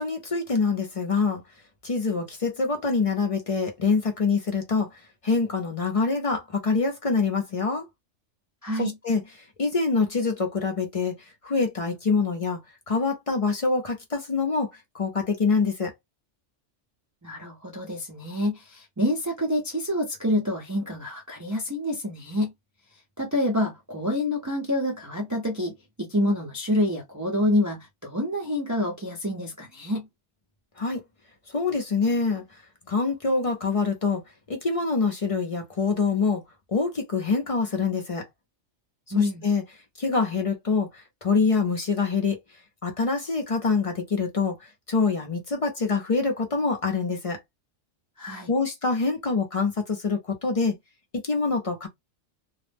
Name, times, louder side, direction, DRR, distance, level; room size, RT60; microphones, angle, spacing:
voice 1, 0.0-1.4 1.8-7.9 8.8-9.2 9.6-11.1 11.4-12.6 12.9-15.9 30.8-31.0 31.5-32.4 32.9-34.2 34.5-36.4 36.7-38.3 39.2-39.6 40.0-42.4 42.8-44.5 44.9-47.4 48.5-50.7 51.2-51.9, left 4 dB, 45° left, 0.4 m, -25 dB
voice 2, 8.6-8.9 17.2-22.5 23.2-30.1 39.1-39.4 48.2-48.5, left 1 dB, 25° right, 0.4 m, -27 dB
2.3 x 2.0 x 3.2 m
omnidirectional pair, 1.2 m